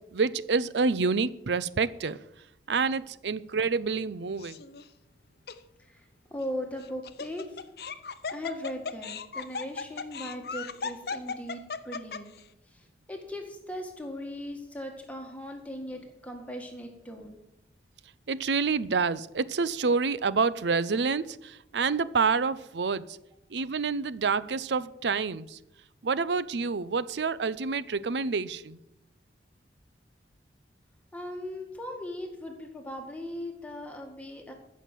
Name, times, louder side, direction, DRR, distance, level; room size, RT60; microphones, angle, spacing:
voice 1, 0.1-2.2 2.7-4.6 18.3-23.2 23.5-25.6 26.0-28.8, right 4 dB, 80° right, 0.6 m, -28 dB
Laughter, 4.4-4.9 5.5-5.6 6.8-12.4, left 5 dB, 60° left, 0.7 m, -37 dB
voice 2, 5.8-7.6 8.3-12.3 12.7-17.4 31.1-34.5, left 1 dB, 10° left, 1.9 m, -39 dB
14.5 x 6.5 x 7.5 m
head